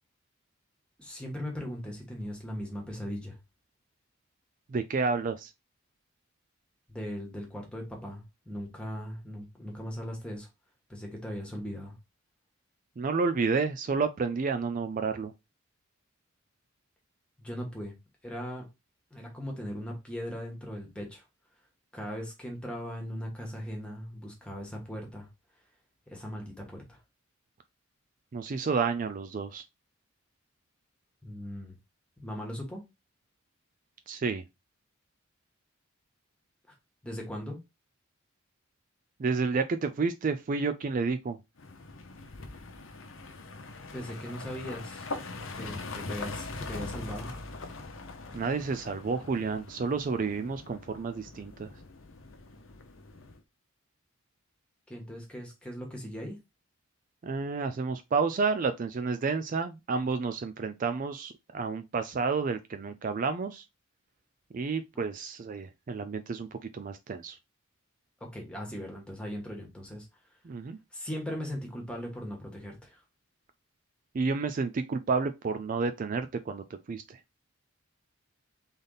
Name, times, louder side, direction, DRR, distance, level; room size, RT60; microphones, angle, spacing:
voice 1, 1.0-3.4 6.9-10.5 10.9-11.9 17.4-17.9 18.2-18.7 19.1-21.2 21.9-25.3 26.1-27.0 31.2-31.7 32.2-32.8 36.7-36.8 37.0-37.6 43.9-45.1 45.5-47.3 54.9-56.4 64.9-65.0 68.2-70.1 70.9-73.0, equal, 5° left, 1.4 m, -39 dB
voice 2, 4.7-5.5 13.0-15.3 28.3-29.6 34.1-34.4 39.2-41.4 48.3-51.7 57.2-63.7 64.5-67.4 70.4-70.8 74.1-77.2, right 4 dB, 40° right, 0.4 m, -30 dB
sound 1, 41.6-53.4, left 3 dB, 70° left, 0.8 m, -42 dB
3.9 x 3.5 x 3.9 m
head